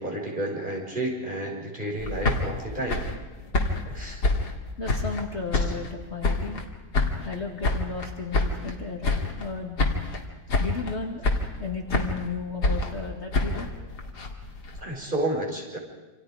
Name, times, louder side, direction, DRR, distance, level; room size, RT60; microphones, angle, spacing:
voice 1, 0.0-3.0 3.9-4.2 8.6-8.7 14.8-15.8, right 1 dB, 30° right, -3 dB, 5.6 m, -31 dB
sound 1, 2.0-5.2 5.5-6.7 6.9-8.7 9.0-9.5 9.8-10.2 10.5-10.9 11.2-12.3 12.6-14.8, left 2 dB, 75° left, 2.8 m, -27 dB
voice 2, 4.8-6.6 7.2-9.8 10.6-13.7, left 4 dB, 40° left, 1 dB, 2.5 m, -34 dB
28.0 x 27.0 x 5.0 m, 1.2 s
omnidirectional pair, 1.8 m